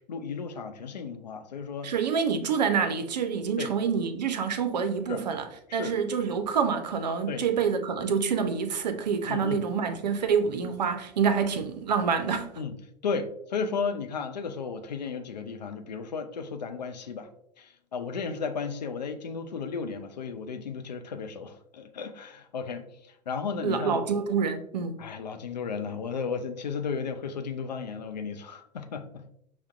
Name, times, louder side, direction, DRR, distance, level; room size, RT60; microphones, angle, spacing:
voice 1, 0.1-1.9 3.6-3.7 5.1-5.2 5.7-6.0 7.3-7.4 9.3-9.6 12.6-12.7 13.0-17.3 17.6-22.9 23.3-24.0 25.0-29.3, left 5 dB, 90° left, 0.4 m, -34 dB
voice 2, 1.8-5.5 5.7-12.5 23.6-24.9, right 6 dB, 85° right, 0.5 m, -27 dB
5.7 x 2.1 x 2.3 m
hypercardioid pair, 80°, 21 cm